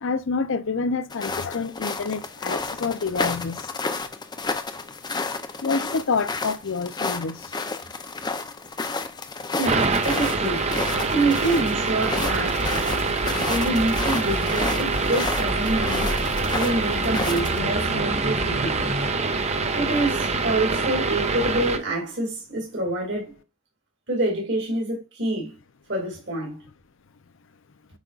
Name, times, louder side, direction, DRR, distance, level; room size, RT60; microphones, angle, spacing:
voice 1, 0.0-3.6 5.6-7.3, left 4 dB, 65° left, 0.6 m, -27 dB
sound 1, 1.1-17.6, left 3 dB, 20° left, 0.6 m, -32 dB
voice 2, 9.6-10.7 11.1-12.7 13.5-16.2 16.5-18.9 19.7-23.4 24.1-25.6 25.9-26.7, right 2 dB, 60° right, 2.5 m, -26 dB
sound 2, 9.7-21.8, right 3 dB, 30° right, 0.9 m, -25 dB
sound 3, 12.2-19.1, equal, 85° right, 3.4 m, -32 dB
8.2 x 5.3 x 2.5 m
head